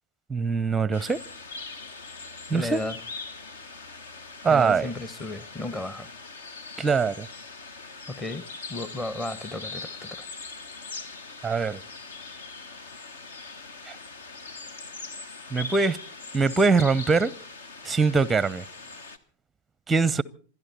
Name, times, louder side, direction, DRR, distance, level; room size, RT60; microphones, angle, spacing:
voice 1, 0.3-1.2 2.5-2.8 4.4-4.9 6.8-7.3 11.4-11.8 13.9-14.0 15.5-16.0 16.3-17.3 17.8-18.6 19.9-20.2, right 4 dB, 10° right, 0.7 m, -22 dB
sound 1, 0.9-19.2, left 4 dB, 65° left, 1.3 m, -41 dB
voice 2, 2.5-3.0 4.5-6.1 8.1-10.3, left 2 dB, 15° left, 1.1 m, -34 dB
27.5 x 12.0 x 4.2 m
figure-of-eight pair, 90°, 0 cm